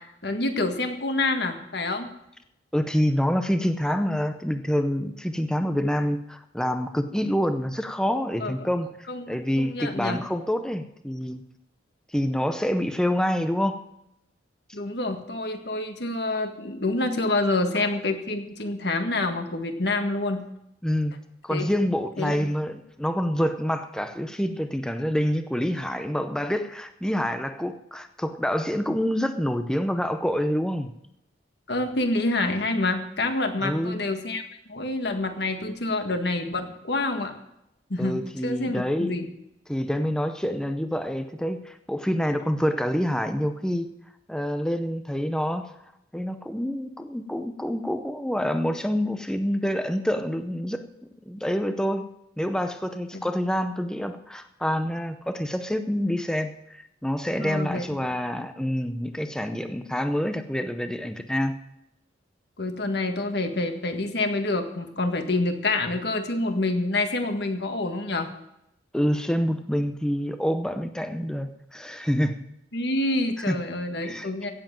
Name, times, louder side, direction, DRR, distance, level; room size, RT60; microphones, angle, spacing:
voice 1, 0.0-2.1 8.4-8.5 9.1-10.2 14.7-20.4 21.5-21.7 22.2-22.4 31.7-34.4 34.7-37.4 37.9-39.3 53.1-53.3 57.4-58.1 62.6-68.3 72.7-74.5, left 2 dB, 55° left, 6 dB, 1.7 m, -27 dB
voice 2, 2.7-11.4 12.1-13.8 20.8-21.2 21.4-30.9 33.6-34.0 38.0-39.1 39.7-43.9 44.3-45.8 46.1-50.8 51.3-52.1 52.4-61.6 68.9-72.4 73.5-73.6 74.0-74.3, equal, 5° left, 8 dB, 0.6 m, -27 dB
16.5 x 7.6 x 7.5 m, 0.82 s
head